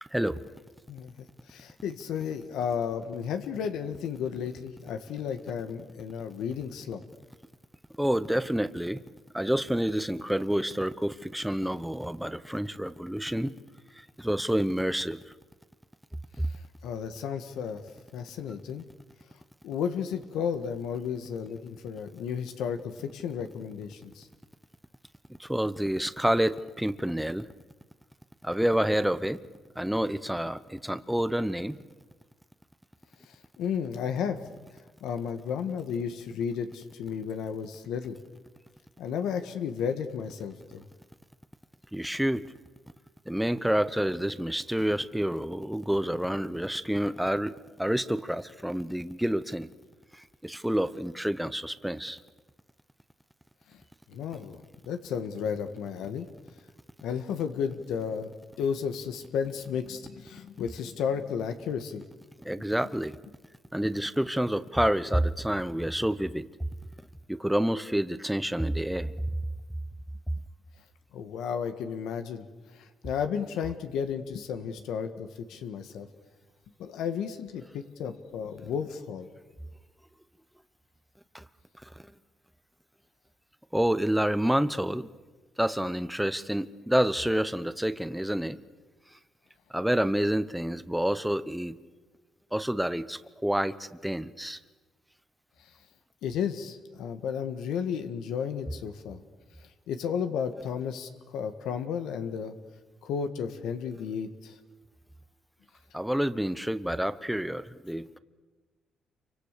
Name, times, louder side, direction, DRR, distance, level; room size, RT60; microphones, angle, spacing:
voice 1, 1.5-7.0 16.8-17.8 18.1-18.8 19.6-24.3 33.6-34.4 35.0-38.2 39.0-40.9 54.1-54.6 54.9-56.3 57.0-58.3 58.6-62.0 71.1-72.4 72.7-76.1 76.8-79.3 96.2-99.2 99.9-102.5 103.0-104.6, left 7 dB, 85° left, 8 dB, 1.6 m, -33 dB
voice 2, 8.0-9.0 9.3-13.5 14.2-15.2 16.4-16.5 25.4-27.5 28.4-29.4 29.8-31.8 41.9-42.4 43.3-49.7 50.1-52.2 62.4-63.2 63.7-66.5 67.3-69.1 81.3-81.4 83.7-85.1 85.6-88.6 89.7-91.8 92.5-94.6 105.9-108.2, right 1 dB, 5° right, 13 dB, 0.9 m, -28 dB
28.0 x 24.5 x 6.8 m, 1.3 s
cardioid pair, 90°, 0 cm